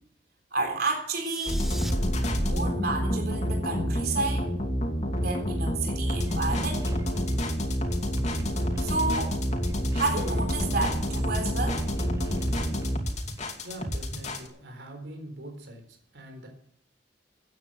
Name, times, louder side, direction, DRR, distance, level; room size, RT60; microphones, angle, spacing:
voice 1, 0.5-1.7 2.4-4.5 5.2-6.8 8.8-9.4 9.9-11.8, right 3 dB, 60° right, 2 dB, 3.7 m, -30 dB
sound 1, 1.1-1.9, equal, ahead, 1.1 m, -41 dB
sound 2, 1.5-14.5, equal, 40° left, 2.7 m, -28 dB
sound 3, 5.5-13.9, right 1 dB, 15° right, 0.7 m, -40 dB
voice 2, 13.6-16.5, right 1 dB, 85° right, 4 dB, 3.8 m, -43 dB
15.0 x 9.3 x 7.6 m, 0.65 s
head